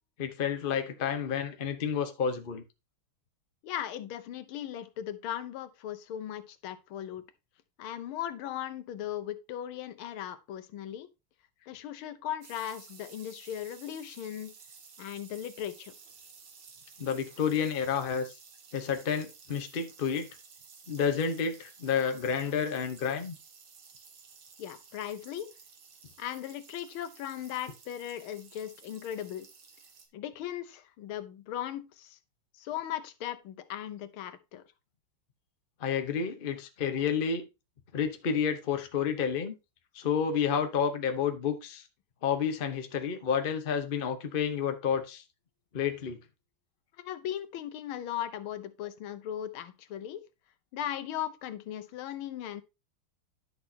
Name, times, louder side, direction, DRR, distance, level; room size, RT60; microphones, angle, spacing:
voice 1, 0.2-2.6 17.0-18.3 18.7-20.3 20.9-23.4 35.8-37.5 37.9-39.5 39.9-41.8 42.2-45.2 45.7-46.2, left 7 dB, 40° left, 0.8 m, -30 dB
voice 2, 3.6-7.2 7.8-11.1 11.7-14.5 15.0-15.9 24.6-25.5 26.2-29.5 30.1-32.2 32.5-34.6 47.0-50.2 50.7-52.6, left 11 dB, 85° left, 1.6 m, -38 dB
sound 1, 12.4-30.1, right 5 dB, 70° right, 2.2 m, -54 dB
10.5 x 6.2 x 2.8 m
omnidirectional pair, 2.2 m